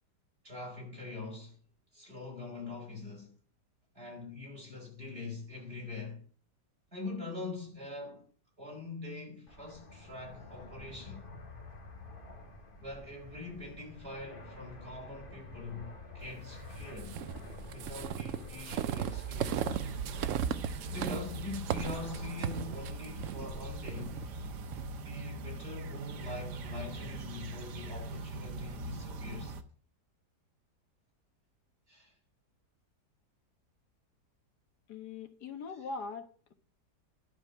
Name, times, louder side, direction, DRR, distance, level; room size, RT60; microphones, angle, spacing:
voice 1, 0.4-1.6 1.9-3.3 3.9-6.2 6.9-8.2 8.6-11.2 12.8-17.2 17.7-19.7 20.9-24.2 24.9-29.6 31.9-32.1, left 3 dB, 35° right, 4.9 m, -43 dB
Fixed-wing aircraft airplane, 9.5-24.6, left 2 dB, 35° left, 1.6 m, -49 dB
sound 1, 17.0-24.9, right 10 dB, 65° right, 0.8 m, -37 dB
sound 2, 19.3-29.6, right 1 dB, 80° right, 1.6 m, -41 dB
voice 2, 34.9-36.5, left 4 dB, 70° left, 1.9 m, -41 dB
11.5 x 4.8 x 7.6 m
omnidirectional pair, 1.8 m